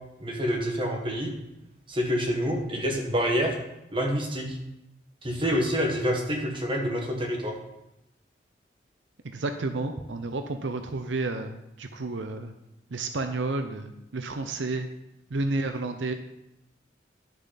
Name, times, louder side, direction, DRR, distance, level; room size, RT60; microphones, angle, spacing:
voice 1, 0.2-1.3 1.9-3.6 3.9-4.6 5.2-7.5, equal, 25° right, 1 dB, 1.4 m, -27 dB
voice 2, 9.2-12.5 12.9-14.9 15.3-16.1, right 2 dB, 80° right, 7 dB, 0.7 m, -31 dB
10.5 x 6.5 x 4.1 m, 0.88 s
head